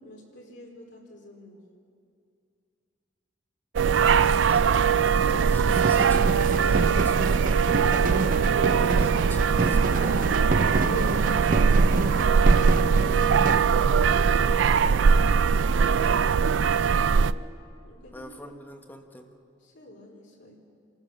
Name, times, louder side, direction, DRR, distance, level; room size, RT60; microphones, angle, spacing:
voice 1, 0.0-1.6 10.8-13.3 16.7-17.5 17.8-18.3 19.6-20.6, left 2 dB, 70° left, -1 dB, 3.9 m, -46 dB
sound 1, 3.8-17.3, right 6 dB, 85° right, 0.4 m, -21 dB
voice 2, 4.1-4.8 5.1-7.9 8.7-10.3 14.3-15.1 15.7-16.4 18.1-19.3, left 1 dB, 10° left, 3 dB, 1.3 m, -43 dB
sound 2, 5.7-13.6, right 2 dB, 45° right, 0.8 m, -29 dB
26.5 x 14.5 x 6.9 m, 2.4 s
head